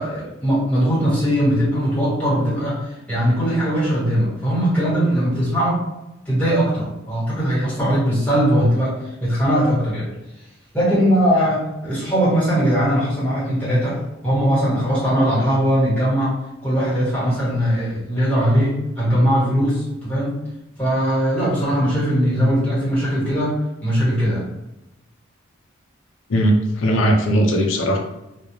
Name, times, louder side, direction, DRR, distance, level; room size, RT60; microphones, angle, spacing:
voice 1, 0.0-5.8 6.2-10.1 10.7-14.0 14.2-16.3 16.6-20.3 20.8-23.5 23.8-24.4, equal, 10° left, -10 dB, 1.2 m, -20 dB
voice 2, 26.3-28.0, equal, 70° left, 2 dB, 0.5 m, -18 dB
2.2 x 2.0 x 2.9 m, 0.94 s
head